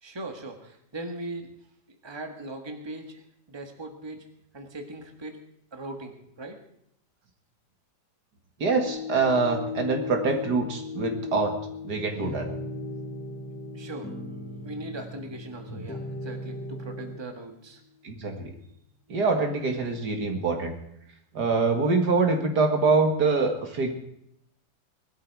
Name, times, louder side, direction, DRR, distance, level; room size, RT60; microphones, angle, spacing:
voice 1, 0.0-1.5 2.0-4.2 4.5-5.4 5.7-6.6 13.7-14.1 14.6-17.8, right 2 dB, 15° right, 4 dB, 1.7 m, -39 dB
voice 2, 8.6-11.6 11.8-12.5 15.7-15.9 18.0-18.5 19.1-20.7 21.3-23.9, right 4 dB, 70° right, 4 dB, 2.5 m, -25 dB
sound 1, 8.9-17.3 17.8-17.9, left 7 dB, 70° left, 2.2 m, -39 dB
sound 2, 12.2-17.2, right 1 dB, 5° left, 1.1 m, -38 dB
19.5 x 13.0 x 4.8 m, 0.76 s
omnidirectional pair, 1.8 m